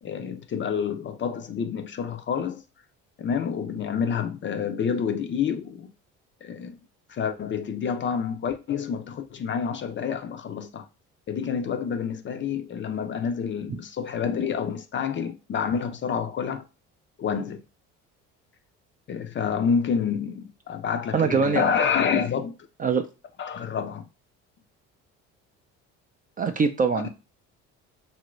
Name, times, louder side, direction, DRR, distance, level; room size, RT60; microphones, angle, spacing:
voice 1, 0.0-2.6 3.2-5.9 6.4-6.8 7.1-10.9 11.3-16.6 17.2-17.6 19.1-22.6 23.4-24.0 26.9-27.1, left 7 dB, 35° left, 0.5 m, -28 dB
voice 2, 21.1-21.7 22.8-23.0 26.4-27.1, right 5 dB, 25° right, 0.4 m, -23 dB
2.8 x 2.6 x 3.1 m
supercardioid pair, 70°, 34 cm